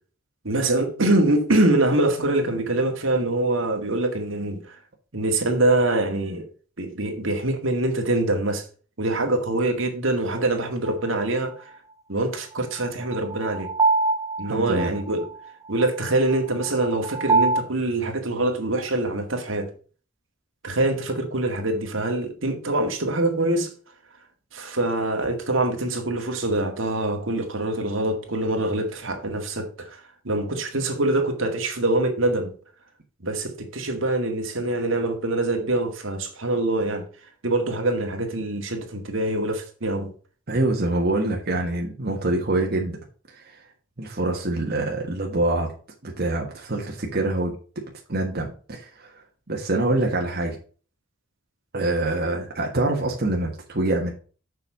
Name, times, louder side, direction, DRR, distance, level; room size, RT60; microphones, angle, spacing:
voice 1, 0.4-4.8 5.1-6.5 6.8-8.7 9.0-11.7 12.1-13.7 14.4-15.3 15.7-19.7 20.6-23.7 24.5-32.5 33.2-37.0 37.4-40.1, right 2 dB, 75° right, 2.0 m, -24 dB
sound 1, 10.9-11.0 12.8-17.6, right 3 dB, 15° right, 0.5 m, -25 dB
voice 2, 14.4-14.9 40.5-43.0 43.3-43.6 44.0-45.7 46.0-47.5 48.1-49.1 49.5-50.6 51.7-54.1, right 2 dB, 50° right, 1.5 m, -25 dB
7.1 x 5.5 x 5.3 m
head